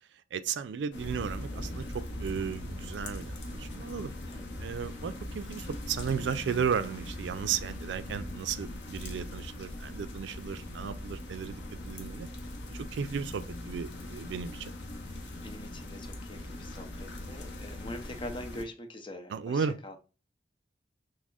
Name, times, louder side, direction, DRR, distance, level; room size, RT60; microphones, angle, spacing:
voice 1, 0.3-4.1 4.6-12.3 12.7-14.7 19.3-19.8, right 7 dB, 85° right, 0.3 m, -34 dB
sound 1, 0.9-18.6, left 1 dB, 80° left, 0.8 m, -40 dB
voice 2, 15.4-19.9, left 1 dB, 30° left, 0.6 m, -43 dB
6.1 x 2.0 x 2.3 m
head